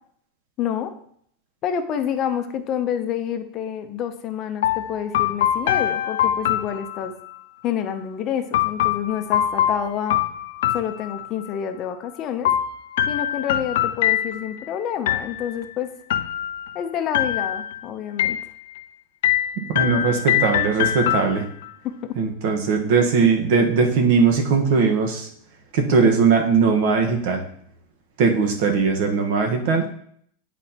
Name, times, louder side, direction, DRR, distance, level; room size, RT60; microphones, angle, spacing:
voice 1, 0.6-0.9 1.6-7.1 7.6-10.2 10.7-12.5 13.1-15.9 16.7-18.4, left 9 dB, 35° left, 8 dB, 0.6 m, -28 dB
sound 1, 4.6-7.4 8.5-11.5 12.5-14.6 15.1-15.7 16.1-16.8 17.1-17.8 18.2-18.8 19.2-21.7, left 11 dB, 75° left, 0.4 m, -23 dB
voice 2, 19.6-21.5 22.2-25.3 25.7-27.4 28.2-29.9, right 5 dB, 60° right, 3 dB, 1.2 m, -19 dB
9.8 x 4.1 x 2.8 m, 0.64 s
supercardioid pair, 155°, 0 cm